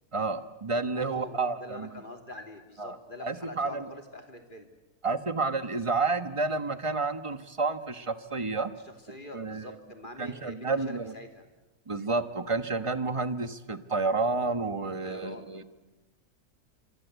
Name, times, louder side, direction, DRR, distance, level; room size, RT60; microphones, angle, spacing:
voice 1, 0.1-2.0 2.8-3.0 3.2-3.9 5.0-8.7 9.3-9.7 10.2-11.1 11.9-15.6, right 3 dB, 20° right, 11 dB, 1.2 m, -30 dB
voice 2, 1.0-4.7 8.8-11.5 15.0-15.6, left 2 dB, 30° left, 5 dB, 3.2 m, -45 dB
27.0 x 25.5 x 8.3 m, 1.1 s
omnidirectional pair, 1.6 m